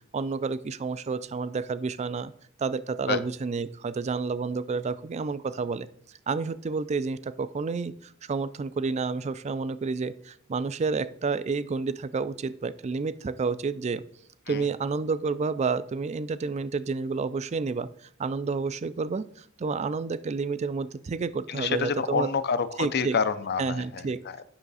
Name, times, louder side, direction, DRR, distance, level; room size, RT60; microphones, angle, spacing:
voice 1, 0.1-2.3 2.6-5.9 6.3-14.0 14.5-22.3 22.8-23.2 23.6-24.2, right 4 dB, 30° right, 16 dB, 0.3 m, -30 dB
voice 2, 21.5-24.4, left 5 dB, 50° left, 13 dB, 0.5 m, -28 dB
8.9 x 5.8 x 4.1 m, 0.63 s
head